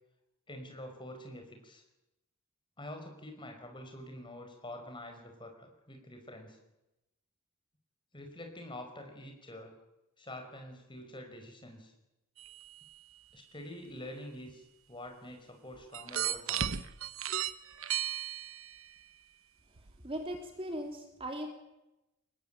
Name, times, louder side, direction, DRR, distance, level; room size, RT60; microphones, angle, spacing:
voice 1, 0.5-1.8 2.8-6.6 8.1-9.7 10.2-11.9 13.3-16.8, left 1 dB, 20° left, 4 dB, 5.1 m, -46 dB
sound 1, 12.4-12.9 14.5-14.6 15.9-18.9 19.8-19.9 20.3-20.4, right 10 dB, 70° right, 1.0 m, -35 dB
voice 2, 20.0-21.5, equal, 25° right, 3 dB, 2.9 m, -38 dB
24.0 x 20.0 x 8.9 m, 0.93 s
head